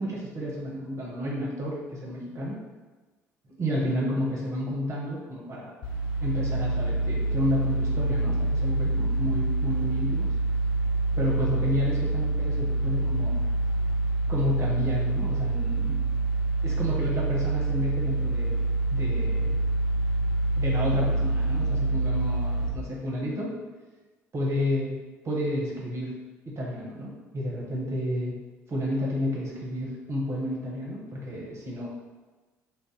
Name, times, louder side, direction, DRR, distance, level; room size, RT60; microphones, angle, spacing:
voice 1, 0.0-2.6 3.6-5.7 6.2-10.3 11.2-13.4 14.3-16.0 16.6-18.6 18.9-19.6 20.6-23.5 24.3-24.9 25.2-26.1 26.5-28.4 28.7-31.9, left 1 dB, 35° right, -4 dB, 0.9 m, -31 dB
sound 1, 5.8-22.7, right 2 dB, 55° left, 0.6 m, -26 dB
2.5 x 2.1 x 3.8 m, 1.2 s
figure-of-eight pair, 55°, 9 cm